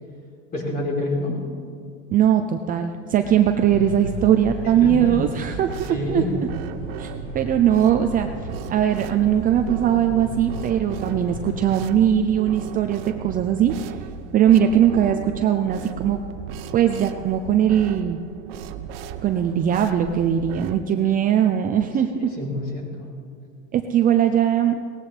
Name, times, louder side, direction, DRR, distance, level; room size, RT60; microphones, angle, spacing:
voice 1, 0.5-1.4 4.6-5.1 5.9-6.3 22.4-23.1, left 2 dB, 25° left, -1 dB, 3.7 m, -27 dB
voice 2, 2.1-6.5 7.0-7.1 7.3-8.3 8.7-13.8 14.3-16.2 16.7-18.2 19.2-22.3 23.7-24.8, right 10 dB, 25° right, 6 dB, 0.5 m, -20 dB
sound 1, 3.2-11.8, left 1 dB, 70° left, 2.1 m, -36 dB
sound 2, 5.2-20.8, right 7 dB, 60° right, 0.8 m, -36 dB
18.0 x 15.0 x 3.4 m, 2.3 s
supercardioid pair, 135°, 33 cm